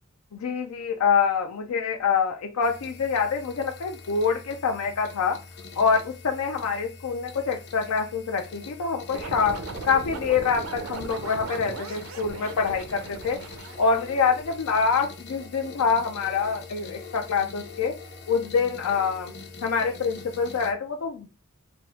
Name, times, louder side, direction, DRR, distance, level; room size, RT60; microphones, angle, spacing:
voice 1, 0.3-5.4 5.8-9.6 9.8-13.4 13.8-17.9 18.3-19.3 19.6-21.3, left 5 dB, 80° left, 2 dB, 0.5 m, -25 dB
sound 1, 2.6-20.7, left 4 dB, 50° left, 0.9 m, -44 dB
sound 2, 9.1-14.6, right 4 dB, 65° right, 0.6 m, -38 dB
4.5 x 2.5 x 3.5 m, 0.32 s
head